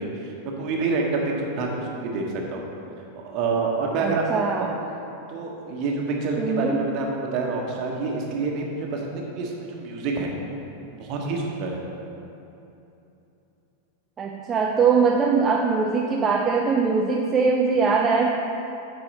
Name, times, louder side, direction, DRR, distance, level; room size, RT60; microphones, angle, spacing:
voice 1, 0.0-2.6 3.1-4.7 5.3-10.3 10.9-11.8, right 3 dB, 40° right, 0 dB, 1.2 m, -27 dB
voice 2, 4.0-4.7 6.4-6.8 14.2-18.3, right 5 dB, 20° right, 1 dB, 0.5 m, -21 dB
8.7 x 5.6 x 4.1 m, 2.9 s
figure-of-eight pair, 90°, 0 cm